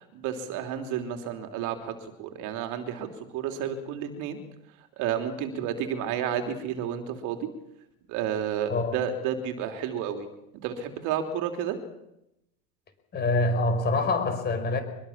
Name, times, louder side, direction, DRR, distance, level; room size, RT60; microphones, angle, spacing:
voice 1, 0.0-4.4 5.0-7.5 8.1-10.3 10.6-11.8, right 8 dB, 45° right, 6 dB, 3.2 m, -31 dB
voice 2, 13.1-14.8, left 2 dB, 25° left, 8 dB, 4.7 m, -25 dB
24.0 x 22.0 x 7.3 m, 0.85 s
supercardioid pair, 145°, 42 cm